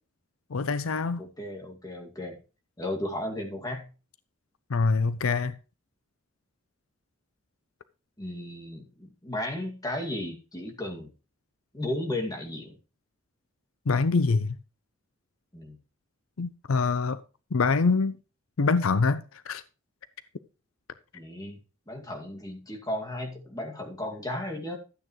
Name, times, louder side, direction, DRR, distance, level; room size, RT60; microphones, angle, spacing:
voice 1, 0.5-1.2 4.7-5.5 13.9-14.5 16.4-17.2 17.5-18.1 18.6-19.6, left 4 dB, 80° left, 0.6 m, -25 dB
voice 2, 1.2-2.4 2.8-3.9 8.2-11.1 11.7-12.7 15.5-15.8 21.1-21.6 21.9-24.8, left 1 dB, 20° left, 2.2 m, -34 dB
12.5 x 8.9 x 3.1 m
head